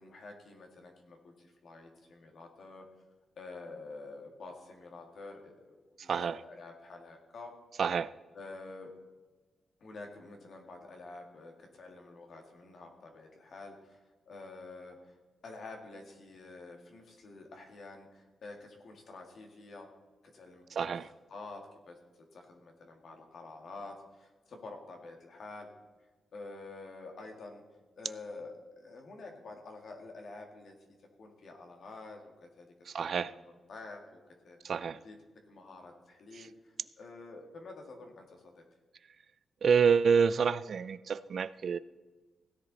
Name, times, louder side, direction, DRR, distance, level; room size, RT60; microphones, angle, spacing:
voice 1, 0.0-2.8 3.4-5.8 6.0-7.5 8.3-8.9 9.8-14.0 14.3-15.2 15.4-19.9 20.3-20.9 21.3-22.0 22.3-25.7 26.3-27.6 28.0-30.7 31.2-32.7 33.0-34.2 34.4-34.7 35.0-35.2 35.5-38.6, left 3 dB, 50° left, 2 dB, 2.1 m, -48 dB
voice 2, 7.8-8.1 20.8-21.1 32.9-33.3 34.6-35.0 36.4-36.5 39.6-41.8, right 6 dB, 50° right, 16 dB, 0.3 m, -28 dB
16.5 x 10.0 x 4.1 m, 1.3 s
wide cardioid pair, 175°, 0 cm